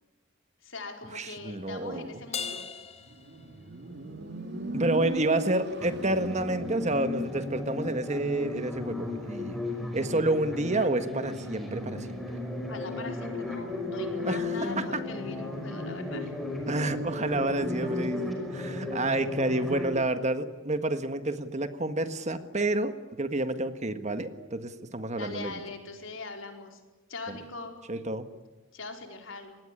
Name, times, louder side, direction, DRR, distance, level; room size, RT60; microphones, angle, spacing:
voice 1, 0.6-2.7 12.7-16.3 25.2-26.8 27.1-27.8 28.7-29.6, left 3 dB, 70° left, 4 dB, 4.8 m, -41 dB
voice 2, 1.1-2.1 4.7-9.6 9.9-12.4 14.2-15.0 16.7-25.6 27.3-27.4 27.9-28.2, right 2 dB, 35° right, 9 dB, 1.6 m, -29 dB
Crash cymbal, 2.3-4.1, left 7 dB, 35° left, 4.0 m, -38 dB
Motorcycle, 3.0-6.5, right 1 dB, 60° right, 3.1 m, -37 dB
sound 1, 5.8-19.9, left 2 dB, ahead, 5.7 m, -35 dB
26.5 x 20.0 x 9.9 m, 1.2 s
head